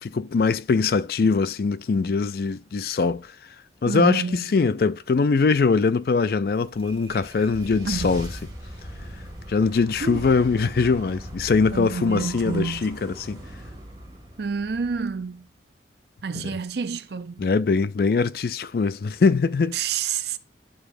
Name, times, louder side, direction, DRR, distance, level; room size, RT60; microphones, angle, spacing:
voice 1, 0.0-3.3 3.8-8.3 9.5-13.4 17.4-19.8, left 4 dB, 55° left, 0.4 m, -22 dB
voice 2, 3.9-4.5 7.9-8.2 10.0-10.2 11.7-12.9 14.4-15.5 16.2-17.5 19.7-20.4, right 5 dB, 65° right, 0.5 m, -29 dB
sound 1, 6.6-15.6, equal, 25° right, 2.1 m, -40 dB
11.0 x 4.8 x 2.6 m
head